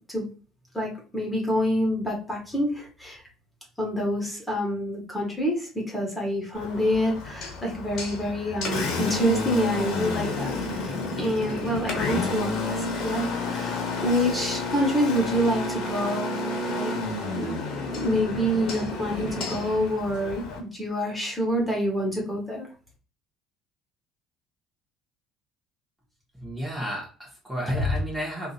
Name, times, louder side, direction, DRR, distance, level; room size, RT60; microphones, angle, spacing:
voice 1, 0.7-3.2 3.8-16.9 17.2-17.6 17.9-22.7, equal, 10° left, -2 dB, 1.7 m, -27 dB
Engine, 6.5-20.6, left 3 dB, 60° left, 1.1 m, -30 dB
voice 2, 26.3-28.5, left 1 dB, 10° right, -3 dB, 1.6 m, -30 dB
3.6 x 2.7 x 2.6 m, 0.38 s
hypercardioid pair, 70°, 0 cm